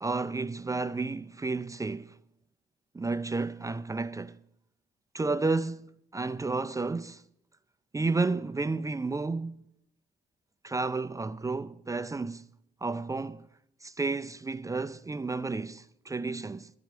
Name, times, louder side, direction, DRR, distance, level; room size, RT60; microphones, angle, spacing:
voice 1, 0.0-2.2 2.9-4.4 5.1-7.2 7.9-9.6 10.6-12.5 12.8-13.5 13.8-16.7, right 3 dB, 15° right, 0.4 m, -31 dB
13.5 x 4.9 x 9.1 m
cardioid pair, 90°, 20 cm